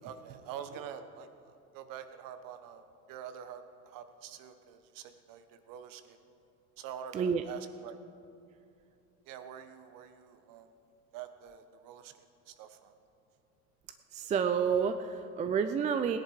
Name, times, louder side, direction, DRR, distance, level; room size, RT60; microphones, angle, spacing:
voice 1, 0.0-6.2 6.8-8.0 9.3-10.7 11.1-12.2 12.5-12.9, right 8 dB, 45° right, 10 dB, 1.2 m, -46 dB
voice 2, 7.1-7.4 14.1-16.2, right 6 dB, 15° right, 9 dB, 0.4 m, -29 dB
18.5 x 10.5 x 4.9 m, 2.5 s
hypercardioid pair, 85°, 45 cm